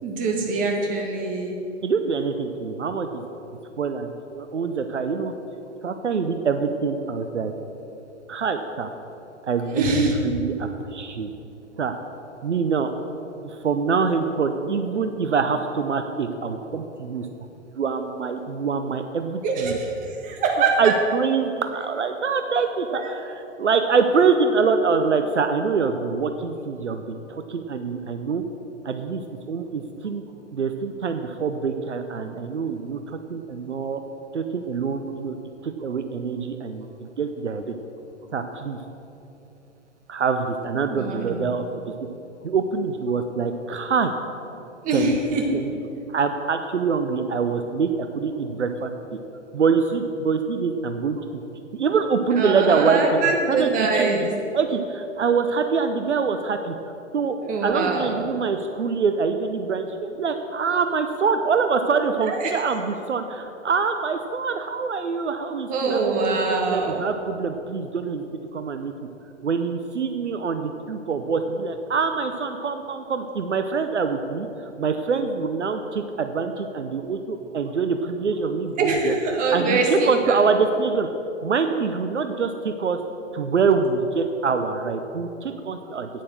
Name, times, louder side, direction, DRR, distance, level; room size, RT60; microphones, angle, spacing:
voice 1, 0.0-1.6 9.7-10.1 19.4-20.9 22.9-23.1 40.7-41.5 44.8-45.4 52.3-54.2 57.4-58.2 62.2-62.5 65.7-67.0 78.8-80.4, right 3 dB, 20° right, 0 dB, 1.6 m, -24 dB
voice 2, 1.8-3.2 3.8-5.3 5.8-7.5 8.3-8.9 9.4-11.3 11.8-11.9 12.4-12.9 13.4-17.3 17.8-19.8 20.8-28.4 28.8-30.2 30.5-34.0 34.3-35.4 35.6-37.6 38.3-38.8 40.1-41.6 42.4-44.1 44.9-45.1 45.5-45.7 46.1-48.9 49.5-51.4 51.7-56.7 57.1-57.4 57.6-68.2 68.5-68.9 69.4-79.1 79.5-81.1 81.4-83.0 83.3-86.1, right 5 dB, 70° right, 7 dB, 0.7 m, -25 dB
9.3 x 8.4 x 6.5 m, 2.9 s
figure-of-eight pair, 110°, 36 cm